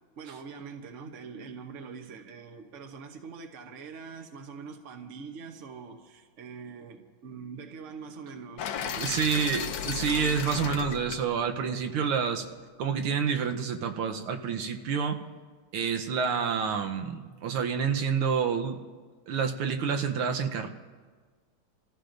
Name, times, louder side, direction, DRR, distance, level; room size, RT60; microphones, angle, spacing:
voice 1, 0.2-9.5, right 5 dB, 55° right, 4 dB, 0.9 m, -44 dB
sound 1, 8.6-12.6, left 8 dB, 70° left, 1.3 m, -36 dB
voice 2, 9.0-12.5 12.8-15.2 15.7-18.8 19.3-20.7, right 6 dB, 90° right, 5 dB, 1.8 m, -28 dB
27.5 x 15.0 x 2.6 m, 1.5 s
omnidirectional pair, 2.3 m